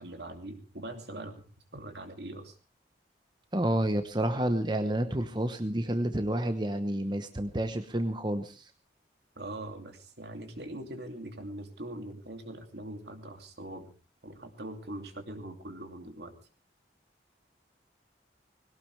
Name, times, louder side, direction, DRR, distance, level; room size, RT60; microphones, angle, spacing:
voice 1, 0.0-1.4 1.7-2.5 9.4-13.9 14.2-16.3, right 1 dB, 70° right, 6 dB, 2.8 m, -42 dB
voice 2, 3.5-8.6, right 1 dB, 25° right, 8 dB, 1.0 m, -29 dB
21.0 x 17.5 x 3.4 m, 0.35 s
head